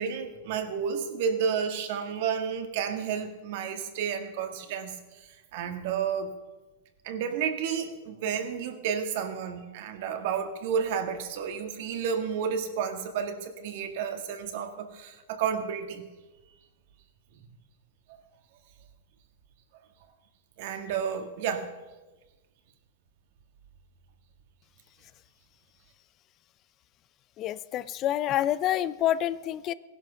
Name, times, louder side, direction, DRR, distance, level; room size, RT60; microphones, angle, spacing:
voice 1, 0.0-6.3 7.0-16.0 20.6-21.7, right 7 dB, 60° right, 6 dB, 1.9 m, -31 dB
voice 2, 27.4-29.7, left 12 dB, 35° left, 17 dB, 0.5 m, -27 dB
16.0 x 11.0 x 5.8 m, 1.2 s
hypercardioid pair, 125°, 0 cm